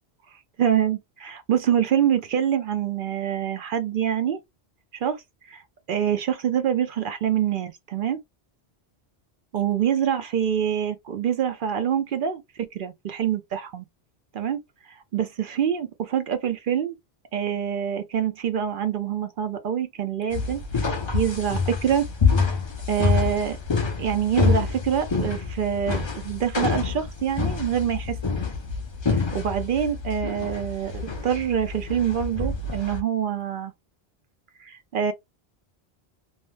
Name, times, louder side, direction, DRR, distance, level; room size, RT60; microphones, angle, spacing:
voice 1, 0.6-4.4 5.0-5.2 5.5-5.6 5.9-8.2 9.5-13.8 14.3-14.6 15.1-17.0 17.3-20.6 21.1-22.1 22.9-23.6 24.0-28.2 29.1-33.7 34.6-35.1, right 9 dB, 60° right, 0.6 m, -25 dB
sound 1, 20.3-33.0, left 5 dB, 35° left, 0.5 m, -26 dB
2.7 x 2.1 x 3.1 m
omnidirectional pair, 1.1 m